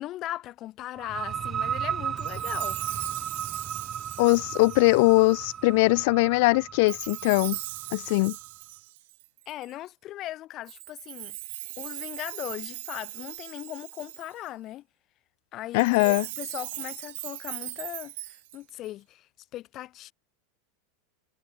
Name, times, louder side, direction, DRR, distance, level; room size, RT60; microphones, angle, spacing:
voice 1, 0.0-3.2 9.5-11.4 11.8-14.8 15.5-20.1, left 14 dB, 35° left, 5.9 m, -39 dB
sound 1, 1.0-8.5, right 8 dB, 25° right, 6.7 m, -35 dB
Chime, 2.2-5.5 6.9-9.7 10.7-14.5 15.7-18.9, right 19 dB, 65° right, 4.3 m, -39 dB
voice 2, 4.2-7.6 7.9-8.3 15.7-16.2, left 25 dB, 60° left, 1.5 m, -21 dB
supercardioid pair, 145°, 0 cm